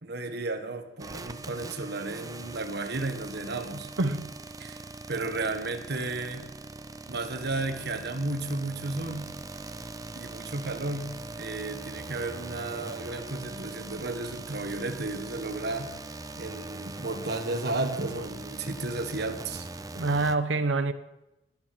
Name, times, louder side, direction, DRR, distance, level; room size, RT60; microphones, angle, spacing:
voice 1, 0.0-3.9 4.6-4.8 5.1-6.5 7.1-9.3 10.1-15.9 16.3-19.7, right 2 dB, 60° right, 6 dB, 1.5 m, -33 dB
sound 1, 1.0-20.3, right 2 dB, 20° right, 0.6 m, -41 dB
voice 2, 4.0-4.3 19.9-20.9, right 3 dB, 85° right, 8 dB, 1.0 m, -26 dB
20.0 x 8.6 x 6.0 m, 0.96 s
head